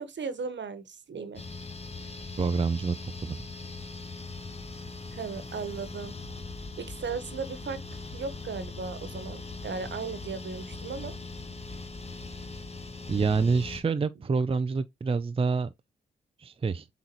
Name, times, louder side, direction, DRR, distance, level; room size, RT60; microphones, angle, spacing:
voice 1, 0.0-1.4 5.1-6.1 6.8-7.8 8.1-11.1, right 5 dB, 65° right, 1.3 m, -36 dB
sound 1, 1.3-13.8, left 3 dB, 30° left, 1.3 m, -40 dB
voice 2, 2.4-3.4 13.1-15.7 16.4-16.9, right 4 dB, 30° right, 0.5 m, -27 dB
7.7 x 4.1 x 3.0 m
cardioid pair, 55°, 20 cm